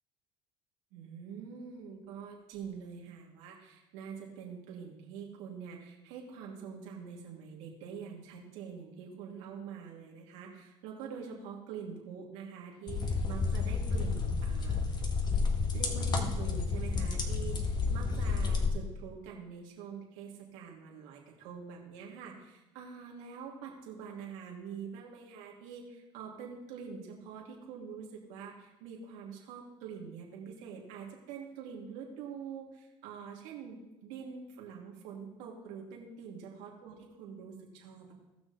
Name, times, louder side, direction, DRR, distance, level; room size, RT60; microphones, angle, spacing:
voice 1, 0.9-15.0 15.7-38.1, right 6 dB, 90° right, -1 dB, 2.5 m, -45 dB
sound 1, 12.9-18.7, left 4 dB, 40° left, 1.5 m, -31 dB
18.5 x 6.3 x 3.4 m, 1.0 s
cardioid pair, 105°, 12 cm